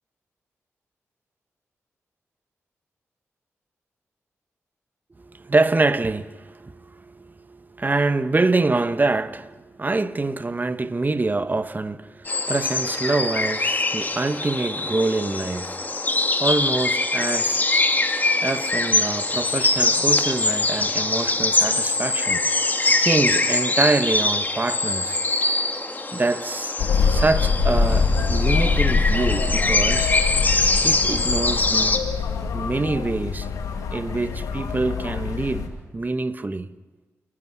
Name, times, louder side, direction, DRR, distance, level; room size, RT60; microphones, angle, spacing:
voice 1, 5.2-16.0 16.4-17.7 18.4-22.4 23.0-25.2 26.1-26.8 27.1-30.1 30.8-32.0 32.5-33.5 33.9-36.7, right 3 dB, 30° right, 1.3 m, -25 dB
sound 1, 12.2-32.0, left 2 dB, 30° left, 2.3 m, -23 dB
sound 2, 26.8-35.7, left 5 dB, 90° left, 2.4 m, -24 dB
29.0 x 11.5 x 9.9 m
cardioid pair, 50°, 6 cm